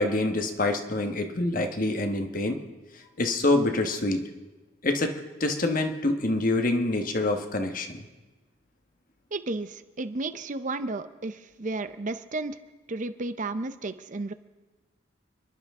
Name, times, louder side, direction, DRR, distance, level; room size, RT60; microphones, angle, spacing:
voice 1, 0.0-2.6 3.2-4.3 4.8-8.0, left 2 dB, 45° left, 5 dB, 1.3 m, -26 dB
voice 2, 9.3-12.6 12.9-14.3, right 2 dB, 40° right, 11 dB, 0.6 m, -33 dB
29.5 x 11.0 x 3.6 m, 1.2 s
head